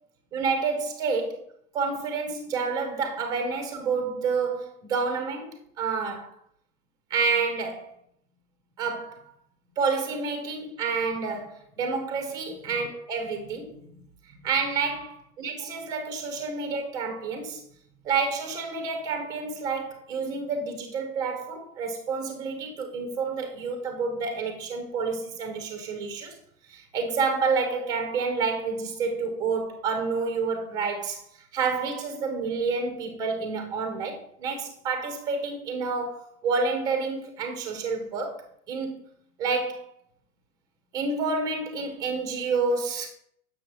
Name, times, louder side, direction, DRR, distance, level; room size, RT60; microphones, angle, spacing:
voice 1, 0.3-1.4 1.7-6.3 7.1-7.9 8.8-9.2 9.8-14.0 14.3-17.6 18.0-26.3 26.7-39.0 39.4-39.9 40.9-43.1, right 4 dB, 10° right, 0.5 m, -29 dB
7.6 x 6.1 x 2.8 m
figure-of-eight pair, 105°, 48 cm